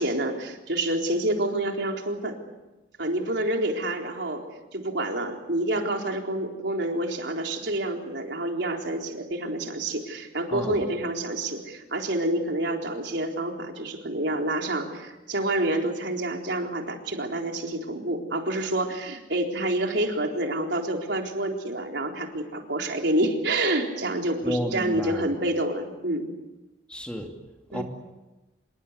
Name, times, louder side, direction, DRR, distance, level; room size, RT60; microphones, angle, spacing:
voice 1, 0.0-2.4 3.0-4.4 4.7-26.3 27.7-27.8, right 1 dB, 75° right, 2 dB, 4.0 m, -28 dB
voice 2, 24.4-25.3 26.9-27.3 27.7-27.8, equal, 5° left, 3 dB, 2.6 m, -31 dB
27.0 x 23.0 x 8.2 m, 1.1 s
head